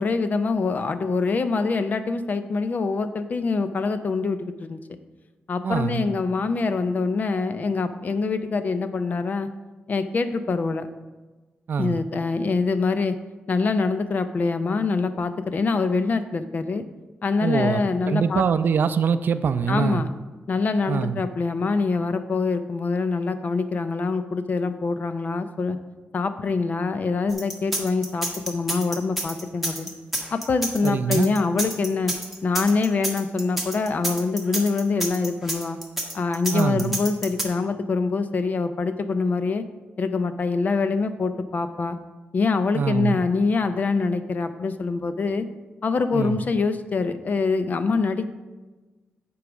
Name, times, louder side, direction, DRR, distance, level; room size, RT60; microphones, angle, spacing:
voice 1, 0.0-4.8 5.5-9.5 9.9-10.9 11.8-13.2 13.5-16.8 17.2-18.4 19.7-20.1 20.5-25.8 26.1-29.9 30.3-32.1 32.4-35.8 36.1-39.6 40.0-42.0 42.3-45.5 45.8-48.3, left 4 dB, 45° left, 10 dB, 0.5 m, -24 dB
voice 2, 5.6-6.1 11.7-12.0 17.4-17.8 18.1-20.0 20.9-21.2 30.8-31.3 36.5-37.0 42.7-43.2 46.1-46.4, right 6 dB, 60° right, 12 dB, 0.4 m, -24 dB
sound 1, 27.3-37.4, right 1 dB, 5° right, 1.2 m, -29 dB
8.4 x 4.7 x 6.1 m, 1.2 s
wide cardioid pair, 125°, 4 cm